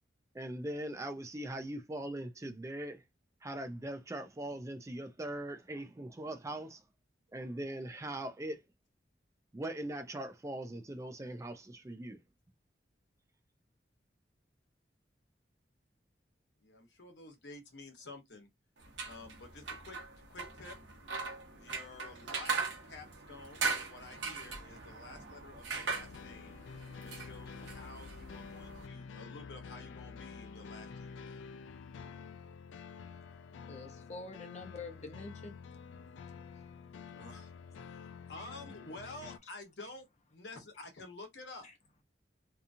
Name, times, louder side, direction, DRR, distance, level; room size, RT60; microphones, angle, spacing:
voice 1, 0.3-3.0 3.4-6.8 7.3-8.6 9.5-12.2, right 1 dB, 15° right, 0.4 m, -41 dB
voice 2, 16.6-18.5 19.0-20.8 21.5-26.6 27.0-31.4 37.0-41.7, left 2 dB, 70° left, 1.0 m, -51 dB
sound 1, 18.8-28.9, right 4 dB, 80° right, 0.9 m, -40 dB
sound 2, 25.9-39.4, left 5 dB, 90° left, 0.3 m, -49 dB
voice 3, 33.7-35.6 36.5-36.6 41.6-41.7, left 3 dB, 40° left, 0.8 m, -46 dB
2.8 x 2.4 x 2.6 m
head